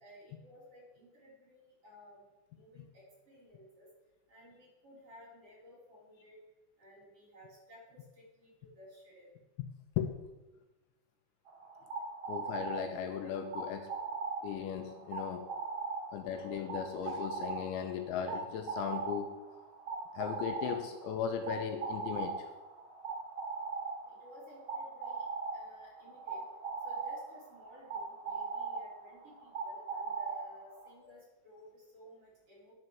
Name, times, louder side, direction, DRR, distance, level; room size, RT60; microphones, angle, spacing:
voice 1, 0.0-2.2 2.5-3.9 4.3-6.4 6.8-9.3 24.0-25.3 25.5-26.5 26.8-32.7, equal, 35° right, -7 dB, 3.1 m, -56 dB
sound 1, 11.5-30.9, right 4 dB, 80° right, 1.1 m, -40 dB
voice 2, 12.3-13.9 14.4-15.5 16.1-19.4 20.1-22.5, left 8 dB, 85° left, 6 dB, 2.9 m, -37 dB
11.0 x 5.3 x 6.2 m, 1.1 s
omnidirectional pair, 5.6 m